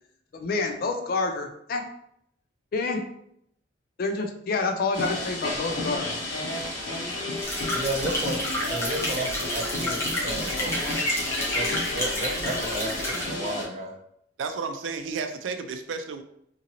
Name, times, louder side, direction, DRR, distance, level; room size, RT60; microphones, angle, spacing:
voice 1, 0.3-1.8 2.7-3.0 4.0-6.2, left 3 dB, 50° left, 4 dB, 0.4 m, -28 dB
sound 1, 4.9-13.6, left 2 dB, 80° left, 1.3 m, -32 dB
sound 2, 7.4-13.2, left 1 dB, 15° left, 0.8 m, -30 dB
voice 2, 7.7-8.4 8.7-10.7 11.5-13.9, right 2 dB, 35° right, 1 dB, 0.5 m, -33 dB
voice 3, 14.4-16.2, right 5 dB, 85° right, 7 dB, 0.4 m, -32 dB
2.8 x 2.6 x 2.8 m, 0.73 s
head